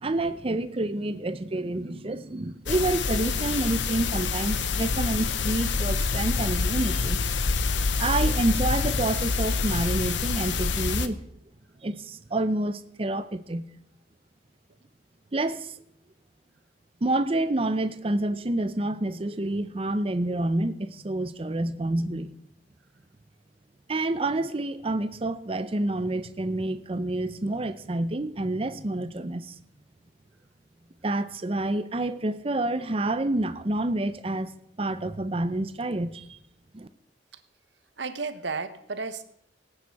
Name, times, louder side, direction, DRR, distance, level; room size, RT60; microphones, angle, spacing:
voice 1, 0.0-7.2 8.0-11.2 11.8-13.7 15.3-15.7 17.0-22.3 23.9-29.5 31.0-34.5 34.8-36.4 36.7-36.9, right 2 dB, 30° right, 12 dB, 0.7 m, -28 dB
sound 1, 2.7-11.1, left 4 dB, 90° left, 0.8 m, -26 dB
voice 2, 38.0-39.2, right 4 dB, 80° right, 11 dB, 1.1 m, -33 dB
19.0 x 8.9 x 4.7 m, 0.74 s
head